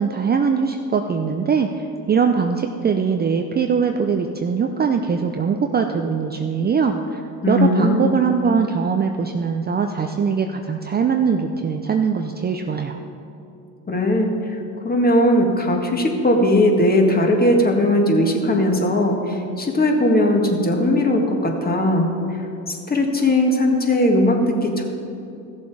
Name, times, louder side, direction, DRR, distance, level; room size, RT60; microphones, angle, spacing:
voice 1, 0.0-7.2 7.5-13.0, right 6 dB, 25° right, 5 dB, 0.6 m, -21 dB
voice 2, 7.4-8.2 13.9-14.3 14.8-22.4 22.7-24.8, left 1 dB, 20° left, 2 dB, 1.8 m, -18 dB
14.5 x 7.0 x 4.8 m, 2.7 s
supercardioid pair, 80°, 41 cm